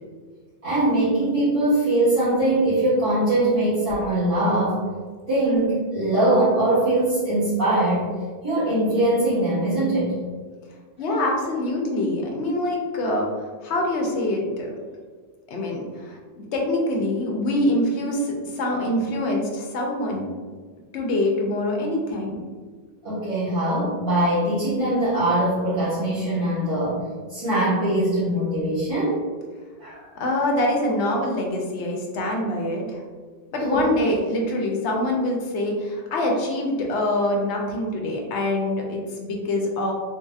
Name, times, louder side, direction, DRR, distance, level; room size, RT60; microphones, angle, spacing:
voice 1, 0.6-4.8 5.3-8.1 8.4-10.1 23.0-27.0 27.3-29.2 29.8-30.1 33.6-33.8, right 1 dB, 30° right, -16 dB, 1.7 m, -22 dB
voice 2, 11.0-13.3 13.6-14.7 15.5-16.2 16.5-20.2 20.9-22.4 30.2-33.0 33.5-39.9, left 1 dB, 75° left, 0 dB, 0.9 m, -24 dB
3.8 x 2.8 x 2.3 m, 1.5 s
omnidirectional pair, 1.2 m